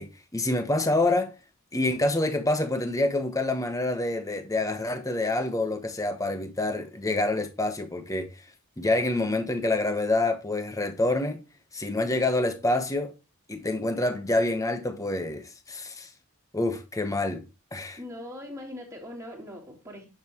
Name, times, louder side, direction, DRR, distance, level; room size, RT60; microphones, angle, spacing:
voice 1, 0.0-1.3 1.7-8.3 8.8-11.4 11.7-13.1 13.5-16.1 16.5-17.4 17.7-18.0, left 2 dB, 15° left, 1.1 m, -27 dB
voice 2, 18.0-20.1, left 1 dB, 15° right, 3.2 m, -40 dB
10.5 x 6.9 x 3.0 m
head